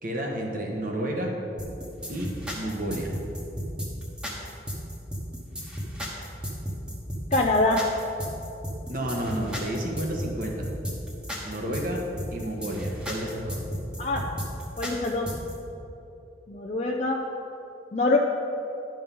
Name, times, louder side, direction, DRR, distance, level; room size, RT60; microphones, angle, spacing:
voice 1, 0.0-1.3 2.1-2.3 2.5-3.1 8.9-10.6 11.4-12.0 12.3-13.6, right 1 dB, 45° right, 0 dB, 1.3 m, -31 dB
sound 1, 1.6-15.5, equal, 5° right, 1.1 m, -34 dB
voice 2, 7.3-7.8 14.0-14.2 14.8-15.3 16.5-17.2 17.9-18.2, left 2 dB, 35° left, 0 dB, 0.5 m, -24 dB
11.5 x 5.3 x 5.4 m, 2.9 s
head